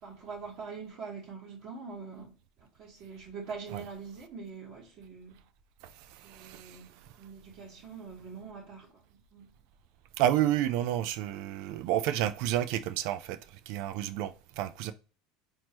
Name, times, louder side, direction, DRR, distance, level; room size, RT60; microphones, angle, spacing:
voice 1, 0.0-5.3 6.2-9.5, right 5 dB, 50° right, 1.6 m, -44 dB
voice 2, 6.2-6.8 10.2-13.4 13.7-14.9, right 12 dB, 65° right, 0.5 m, -30 dB
4.4 x 2.8 x 3.0 m
hypercardioid pair, 90°, 0 cm